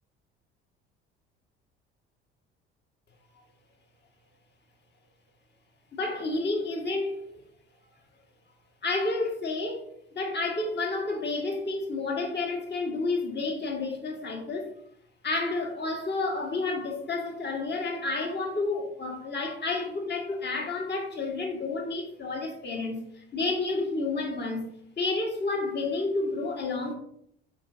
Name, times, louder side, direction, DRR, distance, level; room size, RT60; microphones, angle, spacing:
voice 1, 6.0-7.2 8.8-9.8 10.2-14.6 15.2-23.0 23.3-24.6 25.0-26.9, left 3 dB, 35° left, 1.7 m, -30 dB
8.3 x 4.7 x 2.7 m
hypercardioid pair, 55°, 31 cm